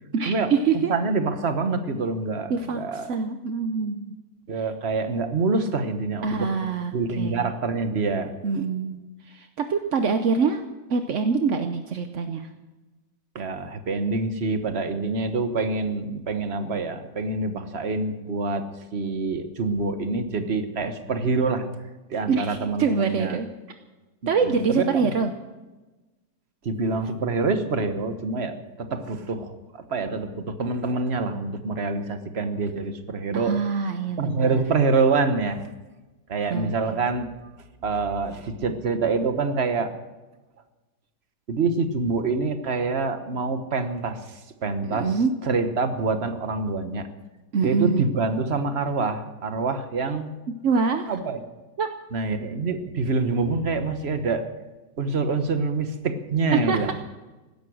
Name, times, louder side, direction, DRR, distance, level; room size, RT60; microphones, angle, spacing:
voice 1, 0.1-1.0 2.5-4.1 6.2-7.5 8.4-9.0 9.3-10.6 10.9-12.5 22.3-23.5 24.3-25.3 33.3-34.6 36.5-36.8 44.8-45.4 47.5-48.1 50.6-51.1 51.8-51.9 56.5-56.9, right 5 dB, 55° right, 7 dB, 0.9 m, -25 dB
voice 2, 0.9-3.1 4.5-6.5 6.9-8.3 13.3-18.6 18.9-21.7 22.1-23.4 24.4-25.1 26.6-33.5 34.2-35.6 36.3-37.3 37.8-39.9 41.5-47.1 47.6-50.3 51.1-51.4 52.1-54.5 55.0-56.9, right 3 dB, 40° right, 8 dB, 1.2 m, -26 dB
16.5 x 12.5 x 6.4 m, 1.1 s
omnidirectional pair, 2.2 m